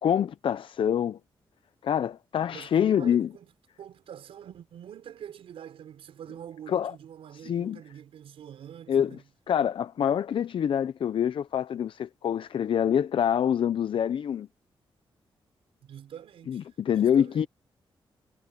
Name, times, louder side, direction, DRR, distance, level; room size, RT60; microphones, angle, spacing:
voice 1, 0.0-1.2 1.8-3.3 6.7-6.9 7.4-7.8 8.9-9.1 9.5-14.5 16.5-17.5, left 9 dB, 65° left, 0.6 m, -26 dB
voice 2, 2.5-3.5 3.8-9.2 15.8-16.7 16.9-17.5, right 9 dB, 85° right, 4.8 m, -45 dB
cardioid pair, 85°, 9 cm